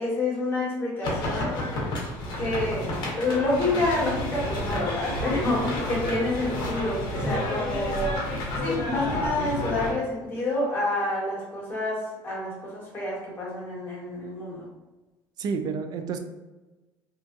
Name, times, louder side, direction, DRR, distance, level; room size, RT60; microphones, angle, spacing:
voice 1, 0.0-1.6 2.4-8.2 8.6-14.7, left 2 dB, 25° left, -5 dB, 1.2 m, -28 dB
sound 1, 1.0-9.9, left 1 dB, 55° left, 0.8 m, -30 dB
voice 2, 15.4-16.2, right 5 dB, 50° right, 7 dB, 0.3 m, -30 dB
2.5 x 2.3 x 2.5 m, 1.1 s
cardioid pair, 115°, 9 cm